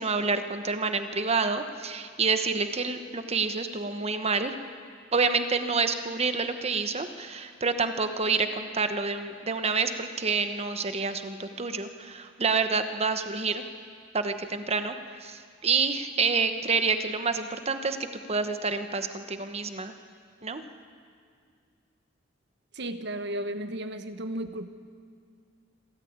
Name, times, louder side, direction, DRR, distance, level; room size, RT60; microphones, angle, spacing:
voice 1, 0.0-4.5 5.1-13.6 14.1-18.0 18.3-20.0 20.4-20.6, right 4 dB, 30° right, 8 dB, 1.1 m, -28 dB
voice 2, 22.7-24.7, right 1 dB, 60° right, 10 dB, 1.1 m, -34 dB
26.5 x 13.5 x 8.8 m, 2.2 s
head